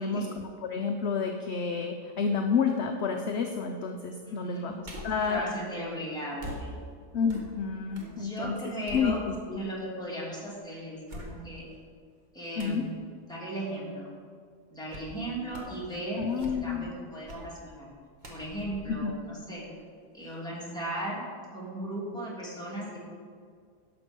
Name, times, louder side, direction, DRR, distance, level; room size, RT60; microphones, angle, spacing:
voice 1, 0.0-4.7 5.0-5.4 7.1-8.5 8.9-9.2 9.5-9.6 12.6-12.9 16.2-16.9 18.9-19.1, left 6 dB, 55° left, 4 dB, 0.8 m, -29 dB
voice 2, 4.2-4.8 5.3-6.8 7.9-9.2 9.5-11.7 12.3-14.1 14.7-17.9 18.3-19.7 20.1-21.2 21.5-23.0, right 1 dB, ahead, -7 dB, 2.8 m, -37 dB
sound 1, 4.8-5.3 6.4-8.2 8.5-9.6 10.2-10.3 11.1-11.8 12.6-12.9 14.9-15.2 15.5-15.9 16.2-16.9 17.3-17.5 18.2-19.9 20.3-20.4, equal, 30° right, 1.4 m, -43 dB
11.5 x 6.9 x 5.3 m, 2.1 s
omnidirectional pair, 1.7 m